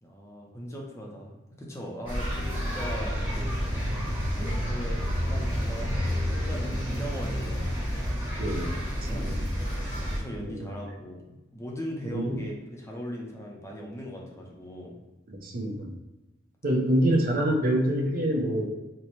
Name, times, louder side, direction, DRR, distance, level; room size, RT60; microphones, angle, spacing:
voice 1, 0.0-3.6 4.3-7.8 8.7-9.3 10.1-15.0, equal, 15° left, -1 dB, 0.5 m, -39 dB
sound 1, 2.1-10.2, equal, 10° right, 1.0 m, -29 dB
voice 2, 8.4-8.7 9.1-9.4 10.4-10.7 12.1-12.4 15.3-15.9 16.6-18.6, right 1 dB, 50° right, 1 dB, 0.6 m, -26 dB
4.1 x 2.1 x 3.0 m, 1.0 s
head